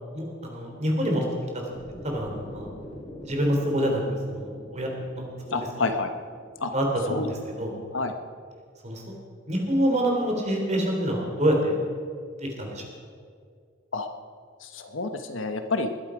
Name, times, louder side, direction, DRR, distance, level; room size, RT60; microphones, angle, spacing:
voice 1, 0.1-1.3 2.0-2.7 3.2-4.0 4.3-5.6 6.7-7.7 8.8-9.0 9.5-11.8 12.4-12.8, equal, 35° right, 1 dB, 3.4 m, -26 dB
sound 1, 1.7-7.8, left 1 dB, 30° left, 3.4 m, -45 dB
voice 2, 5.5-6.1 6.6-6.7 7.1-7.3 7.9-8.1 13.9-14.1 14.6-15.9, left 3 dB, 80° left, 7 dB, 1.2 m, -28 dB
21.0 x 11.5 x 5.0 m, 2.2 s
head